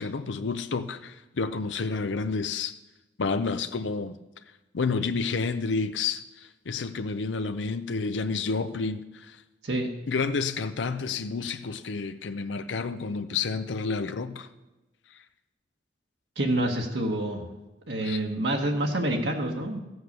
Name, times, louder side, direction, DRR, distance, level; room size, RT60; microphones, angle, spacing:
voice 1, 0.0-2.7 3.2-4.2 4.7-9.4 10.1-14.5 18.0-18.2, left 4 dB, 85° left, 10 dB, 0.6 m, -30 dB
voice 2, 16.4-17.5 17.9-19.8, right 1 dB, 70° right, 1 dB, 1.4 m, -27 dB
14.5 x 8.1 x 6.6 m, 1.0 s
head